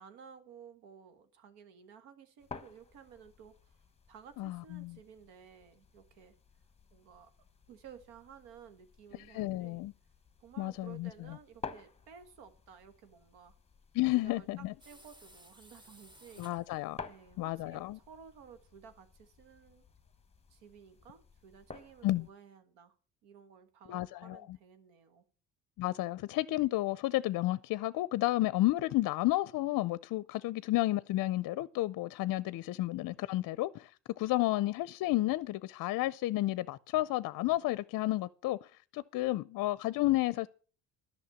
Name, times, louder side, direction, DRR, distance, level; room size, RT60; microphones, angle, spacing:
voice 1, 0.0-3.8 4.1-6.3 6.9-7.3 7.7-9.8 10.4-13.5 14.1-16.5 17.1-19.8 20.5-22.9 23.2-25.2, right 7 dB, 85° right, 1.6 m, -55 dB
sound 1, 2.4-22.3, left 5 dB, 15° left, 1.1 m, -53 dB
voice 2, 4.4-5.0 9.3-9.9 10.6-11.1 13.9-14.7 16.4-17.0 17.4-18.0 22.0-22.3 23.9-24.6 25.8-38.7 38.9-40.5, left 17 dB, 60° left, 0.5 m, -31 dB
sound 2, 14.8-17.0, equal, 10° right, 1.2 m, -58 dB
11.0 x 6.4 x 7.1 m
supercardioid pair, 80°, 39 cm